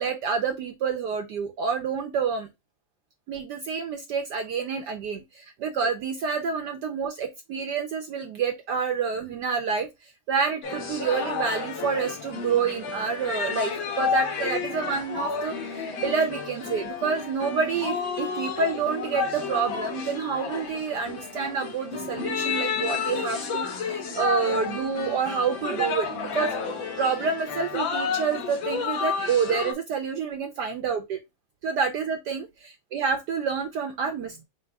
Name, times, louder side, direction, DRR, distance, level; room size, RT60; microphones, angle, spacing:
voice 1, 0.0-2.5 3.3-15.5 16.0-26.1 26.3-26.5 27.0-31.2 31.6-32.5 32.9-34.4, right 6 dB, 70° right, 1.0 m, -28 dB
sound 1, 10.6-29.7, left 5 dB, 70° left, 1.8 m, -31 dB
4.4 x 2.2 x 4.5 m
omnidirectional pair, 2.3 m